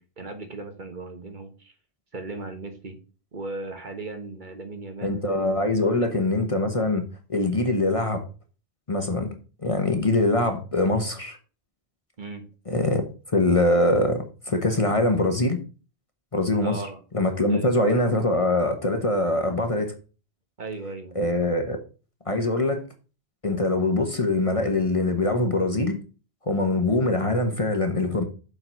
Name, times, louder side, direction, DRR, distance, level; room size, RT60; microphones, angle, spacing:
voice 1, 0.0-1.7 2.1-3.0 3.3-5.2 5.8-6.2 12.2-12.5 16.6-17.0 17.5-17.7 20.6-21.2, right 2 dB, 50° right, 1.3 m, -37 dB
voice 2, 5.0-8.2 8.9-9.3 9.6-11.4 12.7-13.0 13.3-15.6 16.3-16.8 17.1-19.9 21.1-21.8 22.3-22.8 23.4-26.0 26.5-28.2, left 2 dB, 35° left, 1.0 m, -23 dB
7.1 x 4.8 x 5.8 m
omnidirectional pair, 1.1 m